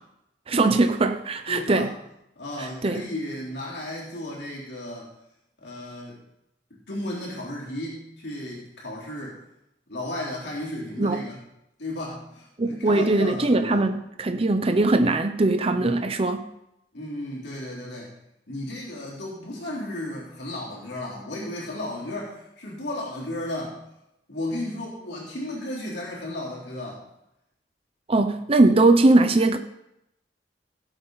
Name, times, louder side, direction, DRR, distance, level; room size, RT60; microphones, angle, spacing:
voice 1, 0.5-1.9 2.6-3.0 11.0-11.2 12.6-16.5 28.1-29.6, right 2 dB, 30° right, 0.6 m, -21 dB
voice 2, 1.5-1.9 2.4-5.1 5.6-6.2 6.7-9.4 9.9-11.4 11.8-13.8 15.7-16.0 16.9-18.1 18.5-23.8 24.3-27.0, left 1 dB, 65° left, 3.5 m, -34 dB
17.0 x 8.0 x 4.0 m
head